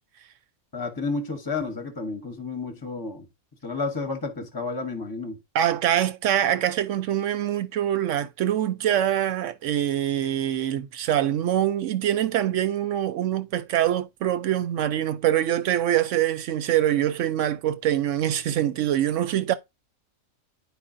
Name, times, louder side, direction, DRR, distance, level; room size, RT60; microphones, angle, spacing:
voice 1, 0.7-3.3 3.6-5.4, left 3 dB, 20° left, 0.8 m, -31 dB
voice 2, 5.5-19.5, right 11 dB, 70° right, 0.8 m, -24 dB
10.0 x 4.7 x 2.5 m
omnidirectional pair, 1.5 m